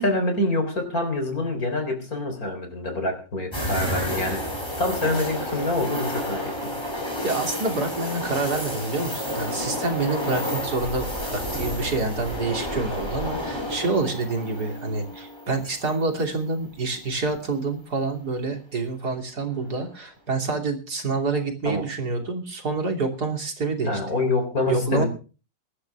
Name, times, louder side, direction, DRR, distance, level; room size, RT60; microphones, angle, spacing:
voice 1, 0.0-4.4 4.8-6.8 21.6-21.9 23.9-25.1, left 2 dB, 50° left, 6 dB, 4.2 m, -26 dB
sound 1, 3.5-16.5 16.9-17.0 19.5-19.9, equal, 15° left, 7.5 m, -31 dB
voice 2, 7.2-24.0 24.7-25.0, right 3 dB, 60° right, 3 dB, 3.4 m, -27 dB
23.0 x 11.5 x 3.5 m, 0.35 s
omnidirectional pair, 1.9 m